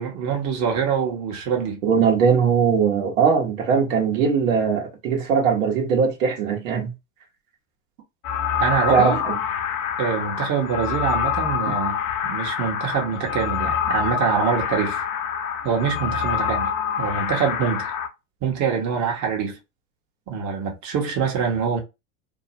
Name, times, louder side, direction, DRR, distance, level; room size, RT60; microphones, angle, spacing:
voice 1, 0.0-1.8 8.6-9.2 10.0-15.0 15.6-18.0 18.4-19.6 20.3-21.8, right 6 dB, 45° right, 1.0 m, -25 dB
voice 2, 1.8-6.9 8.9-9.4, right 6 dB, 80° right, 1.1 m, -20 dB
sound 1, 8.2-18.1, left 8 dB, 80° left, 0.7 m, -26 dB
2.7 x 2.1 x 2.7 m
hypercardioid pair, 90°, 40 cm